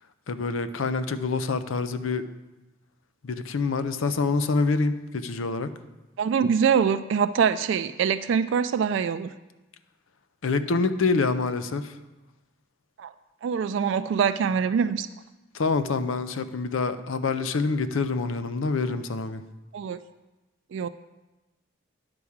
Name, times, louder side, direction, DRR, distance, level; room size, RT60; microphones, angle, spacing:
voice 1, 0.3-2.2 3.2-5.7 10.4-11.9 15.5-19.4, left 4 dB, 85° left, 11 dB, 0.6 m, -26 dB
voice 2, 6.2-9.3 13.0-13.1 13.4-15.1 19.7-20.0 20.7-20.9, right 7 dB, 65° right, 12 dB, 0.3 m, -24 dB
9.8 x 4.8 x 7.1 m, 1.1 s
head